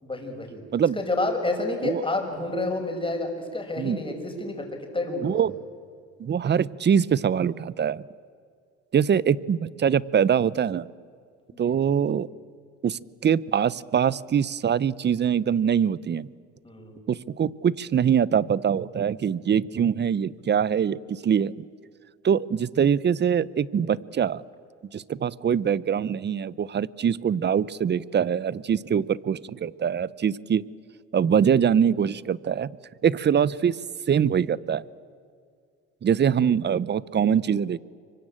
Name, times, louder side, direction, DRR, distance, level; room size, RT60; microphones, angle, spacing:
voice 1, 0.0-0.6 0.9-5.4 11.6-11.8 16.6-17.0 31.1-31.3, left 2 dB, 15° left, 4 dB, 6.2 m, -29 dB
voice 2, 5.2-5.5 6.2-8.0 8.9-10.9 11.6-12.3 12.8-16.3 17.1-21.6 22.2-24.4 24.9-30.6 31.1-32.7 33.0-33.8 34.1-34.8 36.0-37.8, right 8 dB, 35° right, 21 dB, 0.8 m, -23 dB
25.5 x 24.0 x 8.8 m, 2.2 s
supercardioid pair, 85°, 32 cm